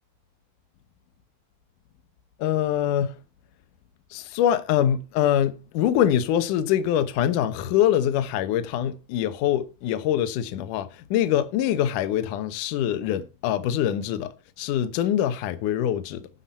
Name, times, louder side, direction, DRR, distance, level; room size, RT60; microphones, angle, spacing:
voice 1, 2.4-3.2 4.1-16.3, left 10 dB, 70° left, 2.1 m, -24 dB
11.5 x 5.9 x 5.5 m
omnidirectional pair, 4.6 m